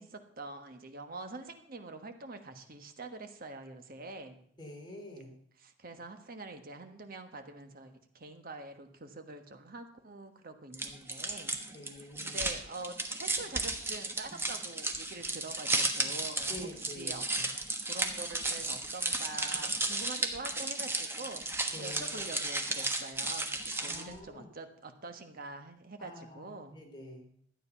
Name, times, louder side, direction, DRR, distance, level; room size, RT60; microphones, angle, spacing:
voice 1, 0.0-4.4 5.6-11.6 12.0-17.5 17.9-26.8, right 3 dB, 50° right, 6 dB, 1.3 m, -45 dB
voice 2, 4.6-5.3 11.7-12.4 16.5-17.2 21.7-22.2 23.8-24.5 26.0-27.3, left 1 dB, 25° left, -1 dB, 3.4 m, -47 dB
sound 1, 10.7-24.2, right 2 dB, 15° right, 1.2 m, -34 dB
12.5 x 9.1 x 5.8 m, 0.63 s
head